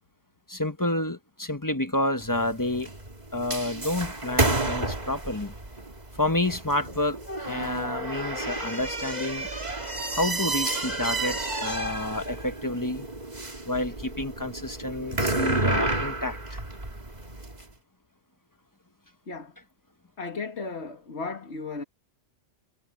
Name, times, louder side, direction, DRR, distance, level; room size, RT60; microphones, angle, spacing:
voice 1, 0.5-2.9 3.3-5.5 6.2-9.5 10.1-13.1 13.6-16.6, left 1 dB, 20° left, 1.0 m, -29 dB
sound 1, 2.2-17.6, right 2 dB, 35° right, 2.8 m, -31 dB
voice 2, 20.2-21.8, left 4 dB, 70° left, 2.1 m, -35 dB
omnidirectional pair, 1.2 m